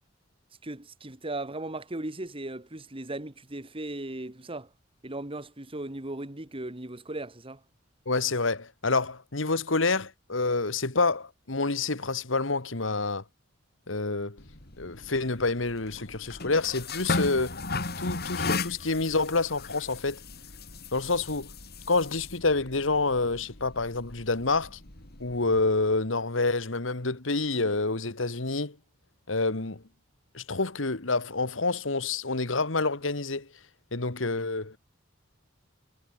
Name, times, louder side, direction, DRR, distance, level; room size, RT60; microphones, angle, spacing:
voice 1, 0.6-4.7 5.0-7.6, right 2 dB, 30° right, 2.0 m, -37 dB
voice 2, 8.1-13.2 13.9-14.4 14.8-17.6 18.0-20.2 20.9-21.5 21.9-24.8 25.2-28.8 29.3-29.8 30.3-33.5 33.9-34.8, left 3 dB, 80° left, 2.0 m, -28 dB
sound 1, 14.4-25.6, left 3 dB, 55° left, 3.8 m, -36 dB
head